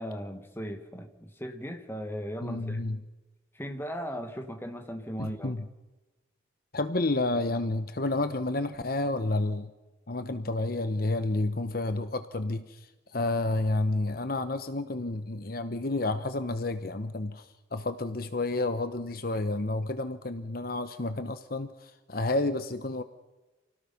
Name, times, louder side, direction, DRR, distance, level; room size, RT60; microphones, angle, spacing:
voice 1, 0.0-2.8 3.5-5.5, equal, 10° left, 5 dB, 2.1 m, -37 dB
voice 2, 2.4-3.0 5.2-5.6 6.7-9.7 10.1-23.0, left 2 dB, 50° left, 10 dB, 1.0 m, -30 dB
28.0 x 18.0 x 6.0 m, 1.1 s
head